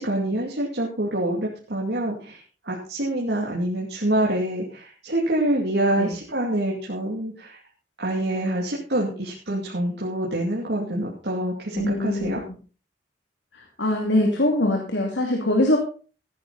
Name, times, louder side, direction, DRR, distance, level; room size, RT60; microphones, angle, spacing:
voice 1, 0.0-2.4 2.6-7.6 8.0-12.4, right 1 dB, 65° right, -3 dB, 2.7 m, -26 dB
voice 2, 11.7-12.4 13.5-15.8, left 1 dB, 75° left, 2 dB, 2.6 m, -23 dB
15.0 x 10.5 x 4.1 m, 0.38 s
head